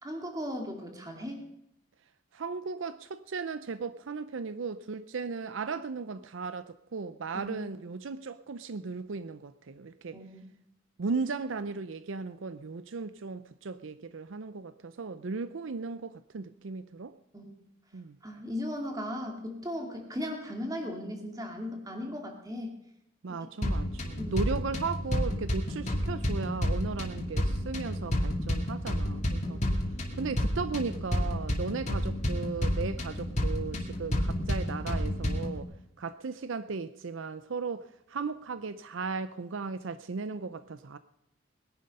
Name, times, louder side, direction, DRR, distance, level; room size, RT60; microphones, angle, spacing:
voice 1, 0.0-1.4 7.3-7.6 10.1-10.4 17.3-17.5 18.2-22.7 24.2-24.5 29.4-29.6 30.1-30.3, left 1 dB, 20° right, 2.4 m, -37 dB
voice 2, 2.3-10.2 11.0-17.1 17.9-18.2 23.2-29.6 30.1-35.7 36.0-41.0, right 4 dB, 75° right, 0.5 m, -36 dB
sound 1, 23.6-35.6, equal, 35° left, 2.3 m, -30 dB
20.5 x 11.0 x 5.4 m
head